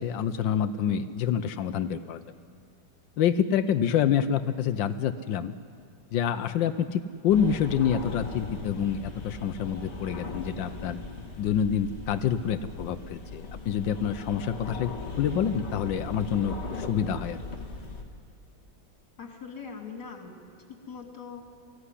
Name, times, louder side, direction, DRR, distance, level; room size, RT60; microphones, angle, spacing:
voice 1, 0.0-2.2 3.2-5.5 6.1-11.0 11.4-17.4, left 8 dB, 75° left, 11 dB, 1.4 m, -27 dB
sound 1, 7.3-18.0, left 3 dB, 35° left, 2.1 m, -39 dB
voice 2, 19.2-20.4 20.7-21.4, left 5 dB, 55° left, 2 dB, 3.4 m, -41 dB
23.5 x 15.0 x 9.9 m, 2.5 s
omnidirectional pair, 2.1 m